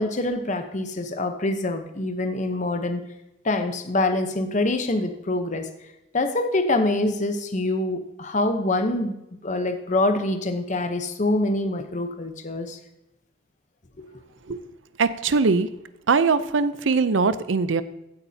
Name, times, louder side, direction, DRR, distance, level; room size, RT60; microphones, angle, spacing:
voice 1, 0.0-3.0 3.4-5.7 6.1-12.8 14.0-14.1, left 2 dB, 40° left, 7 dB, 0.8 m, -25 dB
voice 2, 15.0-15.7 16.1-17.8, right 4 dB, 85° right, 14 dB, 0.6 m, -21 dB
16.0 x 8.4 x 2.8 m, 0.90 s
head